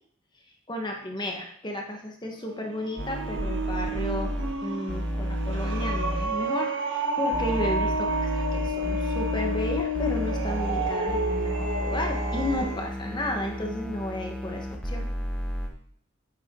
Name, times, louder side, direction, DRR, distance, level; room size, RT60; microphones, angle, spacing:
voice 1, 0.7-4.3 4.6-15.1, left 1 dB, 25° left, 2 dB, 1.3 m, -33 dB
sound 1, 2.3-12.9, right 1 dB, 75° right, 1.3 m, -31 dB
sound 2, 3.0-4.5 4.9-6.3 7.3-15.7, equal, 5° left, 0.9 m, -31 dB
8.7 x 7.9 x 3.7 m, 0.63 s
head